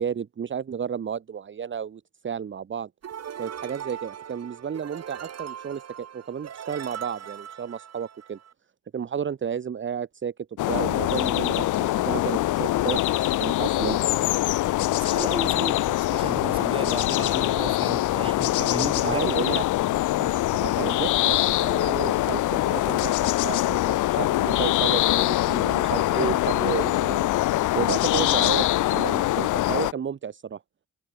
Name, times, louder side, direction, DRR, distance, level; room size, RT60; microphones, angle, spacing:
voice 1, 0.0-2.9 3.4-8.4 8.9-10.3 10.7-14.1 19.0-19.6 20.6-27.3 27.7-30.6, right 7 dB, 40° right, 1.4 m, -32 dB
sound 1, 3.0-8.5, right 9 dB, 55° right, 3.8 m, -40 dB
sound 2, 10.6-29.9, left 16 dB, 85° left, 1.2 m, -23 dB
voice 2, 14.9-19.2 20.2-20.4 26.2-26.3, right 3 dB, 15° right, 3.2 m, -34 dB
cardioid pair, 90°, 30 cm